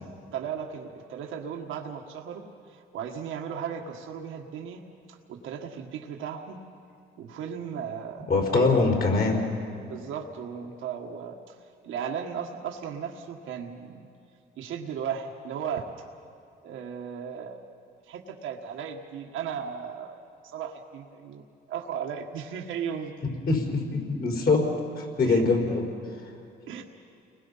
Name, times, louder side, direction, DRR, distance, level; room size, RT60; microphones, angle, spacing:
voice 1, 0.3-4.8 5.1-6.6 7.2-8.8 9.8-11.6 11.8-14.1 14.6-15.9 16.6-17.6 18.1-20.2 20.4-21.4 21.7-23.1 25.3-25.4 26.7-26.8, right 7 dB, 90° right, 2 dB, 1.5 m, -36 dB
voice 2, 8.3-9.5 23.5-24.7 25.0-25.9, left 3 dB, 55° left, 1 dB, 4.5 m, -23 dB
30.0 x 21.0 x 5.6 m, 2.6 s
cardioid pair, 90°, 20 cm